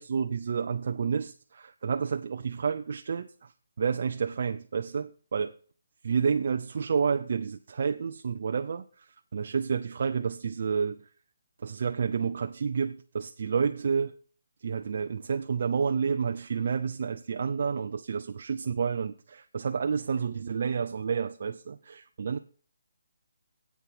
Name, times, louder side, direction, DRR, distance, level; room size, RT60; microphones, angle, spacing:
voice 1, 0.0-5.6 6.0-11.1 11.6-14.1 14.6-22.4, right 6 dB, 45° right, 0.6 m, -30 dB
8.4 x 8.2 x 5.9 m
hypercardioid pair, 170°, 0 cm